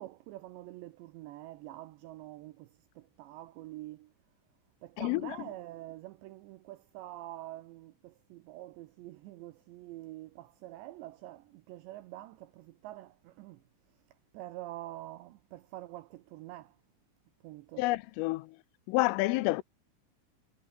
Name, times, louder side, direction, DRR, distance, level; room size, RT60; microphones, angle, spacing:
voice 1, 0.0-4.1 4.8-13.6 14.3-16.8 17.4-17.8, right 15 dB, 80° right, 2.6 m, -46 dB
voice 2, 5.0-5.4 17.8-18.6 18.9-19.6, left 20 dB, 85° left, 3.2 m, -29 dB
omnidirectional pair, 6.0 m